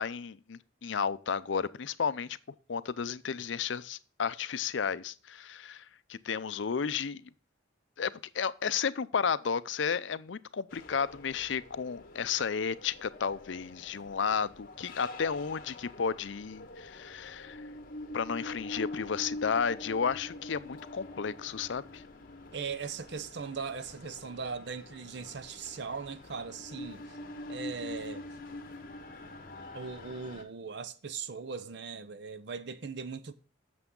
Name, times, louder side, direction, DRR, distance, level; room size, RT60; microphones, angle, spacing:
voice 1, 0.0-2.4 2.7-7.3 8.0-17.7 18.1-22.0, left 6 dB, 70° left, 0.5 m, -33 dB
sound 1, 10.7-30.4, left 2 dB, 45° left, 1.5 m, -45 dB
voice 2, 22.5-27.0 27.5-28.2 29.7-33.3, right 5 dB, 60° right, 0.6 m, -39 dB
8.4 x 6.9 x 3.7 m
head